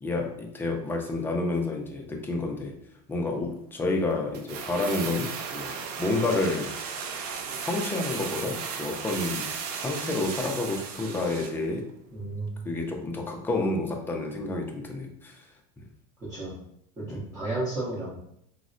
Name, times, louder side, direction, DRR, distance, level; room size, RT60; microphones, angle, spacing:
voice 1, 0.0-2.7 3.1-6.7 7.6-11.9 12.7-15.4 17.1-17.2, left 2 dB, 10° left, 1 dB, 0.3 m, -29 dB
sound 1, 4.3-11.6 11.9-12.0, right 6 dB, 70° right, 0.5 m, -35 dB
voice 2, 12.1-12.7 16.3-16.6 17.0-18.2, right 2 dB, 20° right, -9 dB, 0.7 m, -33 dB
3.9 x 2.1 x 2.5 m, 0.72 s
supercardioid pair, 145°, 20 cm